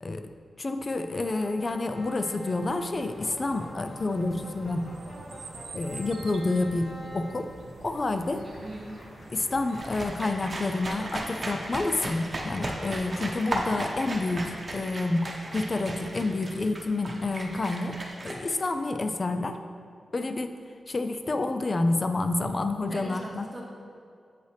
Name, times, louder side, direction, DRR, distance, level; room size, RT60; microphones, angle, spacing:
voice 1, 0.0-0.3 0.6-4.9 5.7-7.5 7.8-8.4 9.3-18.0 18.2-19.6 20.1-20.5 20.9-23.5, left 2 dB, 40° left, 8 dB, 0.4 m, -29 dB
sound 1, 0.9-10.3, right 3 dB, 75° right, 0.5 m, -47 dB
sound 2, 1.2-15.4, equal, 60° left, 1.1 m, -49 dB
voice 2, 8.4-9.0 22.9-23.7, right 1 dB, 15° right, -4 dB, 1.3 m, -41 dB
sound 3, 9.7-18.3, right 1 dB, 40° right, 1.0 m, -35 dB
7.7 x 5.4 x 3.3 m, 2.3 s
wide cardioid pair, 95°, 0 cm